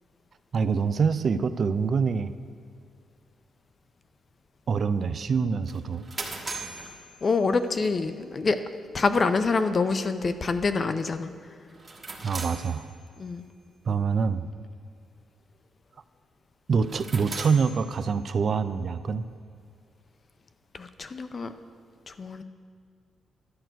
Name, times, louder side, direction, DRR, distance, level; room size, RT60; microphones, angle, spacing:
voice 1, 0.5-2.3 4.7-6.1 12.2-12.9 13.9-14.5 16.7-19.3, right 5 dB, 40° right, 12 dB, 0.4 m, -25 dB
sound 1, 5.7-7.9 11.7-13.4 16.7-18.5, right 3 dB, 20° right, 1.3 m, -40 dB
voice 2, 7.2-8.6 8.9-11.3 13.2-13.4 20.7-21.5 22.1-22.4, left 4 dB, 30° left, 10 dB, 0.5 m, -26 dB
11.5 x 6.0 x 9.0 m, 2.3 s
wide cardioid pair, 180°, 0 cm